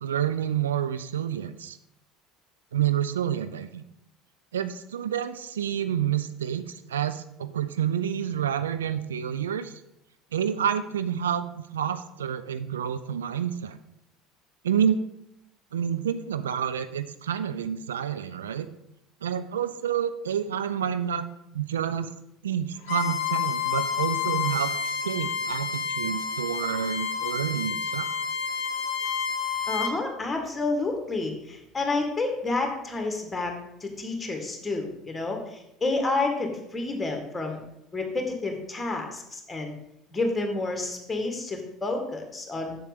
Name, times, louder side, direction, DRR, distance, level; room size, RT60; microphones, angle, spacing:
voice 1, 0.0-1.8 2.7-3.8 4.5-9.8 10.3-13.8 14.6-15.0 15.7-18.7 19.2-21.3 21.5-22.1 22.4-28.1, right 9 dB, 75° right, 12 dB, 0.4 m, -29 dB
Bowed string instrument, 22.8-29.9, left 7 dB, 55° left, 0.9 m, -29 dB
voice 2, 29.7-33.6 33.8-37.6 37.9-39.8 40.1-42.8, left 3 dB, 15° left, 3 dB, 2.0 m, -29 dB
7.3 x 7.0 x 5.1 m, 0.83 s
figure-of-eight pair, 65°, 0 cm